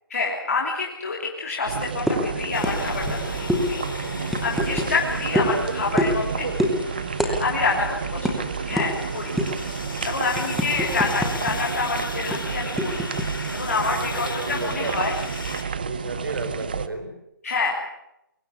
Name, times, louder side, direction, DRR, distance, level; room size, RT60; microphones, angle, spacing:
voice 1, 0.1-3.8 4.4-6.5 7.2-9.3 10.0-13.1 13.5-15.2 17.4-17.8, left 4 dB, 40° left, -2 dB, 3.2 m, -27 dB
sound 1, 1.6-16.9, right 6 dB, 25° right, 0.7 m, -31 dB
sound 2, 2.1-2.3 2.6-2.8 3.0-3.2 3.5-3.6 4.3-4.9 5.3-5.5 6.0-6.2 6.6-6.8 7.2-7.3 7.6-7.8 8.2-8.3 8.8-8.9 9.4-9.6 10.0-11.5 11.8-11.9 12.3-13.3, equal, ahead, 0.9 m, -24 dB
sound 3, 2.5-15.6, left 3 dB, 70° left, 6.3 m, -37 dB
voice 2, 4.8-6.8 13.9-15.3 15.8-17.1, right 2 dB, 65° right, 7 dB, 5.8 m, -33 dB
22.0 x 18.0 x 8.4 m, 0.83 s
hypercardioid pair, 180°, 12 cm